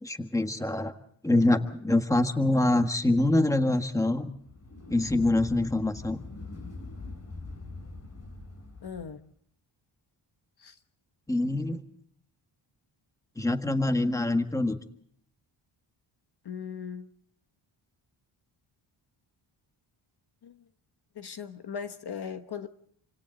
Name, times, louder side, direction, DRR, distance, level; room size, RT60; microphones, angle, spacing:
voice 1, 0.0-0.9 1.2-4.3 4.9-6.2 11.3-11.8 13.4-14.8, left 2 dB, 5° left, 7 dB, 1.6 m, -25 dB
sound 1, 4.3-9.2, left 3 dB, 30° left, 3.9 m, -43 dB
voice 2, 8.8-9.2 10.6-10.8 16.4-17.1 20.4-20.6 21.1-22.7, left 7 dB, 50° left, 9 dB, 1.3 m, -38 dB
28.5 x 26.0 x 3.9 m, 0.64 s
wide cardioid pair, 135°, 49 cm